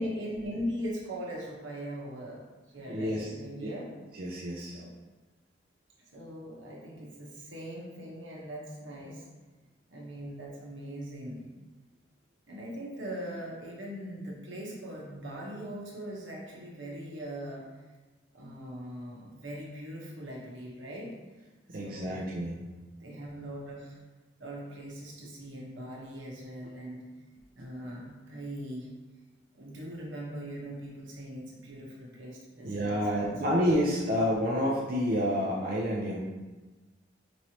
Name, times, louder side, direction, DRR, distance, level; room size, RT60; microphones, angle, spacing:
voice 1, 0.0-2.4 2.7-3.9 4.6-4.9 6.1-9.2 9.9-11.4 12.5-17.6 18.3-21.1 21.8-22.3 23.0-24.0 24.4-27.0 27.6-28.9 29.6-33.6, equal, 90° right, -3 dB, 1.1 m, -40 dB
voice 2, 2.9-3.3 3.6-3.7 4.2-4.8 21.7-22.6 32.6-36.2, equal, 50° right, -4 dB, 0.5 m, -29 dB
5.2 x 3.1 x 2.9 m, 1.2 s
head